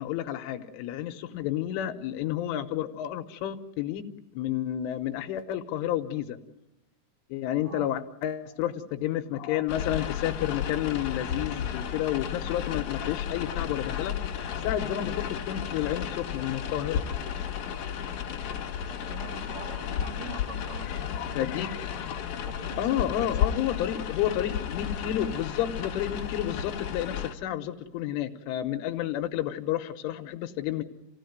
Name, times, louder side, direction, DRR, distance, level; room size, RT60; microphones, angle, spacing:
voice 1, 0.0-4.0 4.3-6.4 7.3-14.2 14.6-17.0 20.9-22.4 22.8-30.8, left 12 dB, 80° left, 8 dB, 3.4 m, -31 dB
sound 1, 9.7-27.3, left 8 dB, 50° left, 2.6 m, -33 dB
voice 2, 19.1-21.5 22.4-23.6, right 3 dB, 55° right, 1 dB, 1.9 m, -43 dB
28.5 x 17.0 x 9.4 m, 0.98 s
omnidirectional pair, 5.9 m